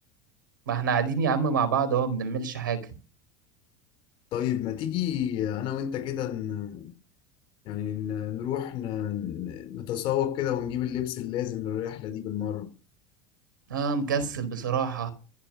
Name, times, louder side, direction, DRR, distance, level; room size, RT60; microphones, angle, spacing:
voice 1, 0.7-2.8 13.7-15.1, right 6 dB, 90° right, 4.5 m, -26 dB
voice 2, 4.3-6.9 7.7-12.7, left 10 dB, 55° left, 4.0 m, -30 dB
15.0 x 7.2 x 9.7 m
hypercardioid pair, 85°, 11 cm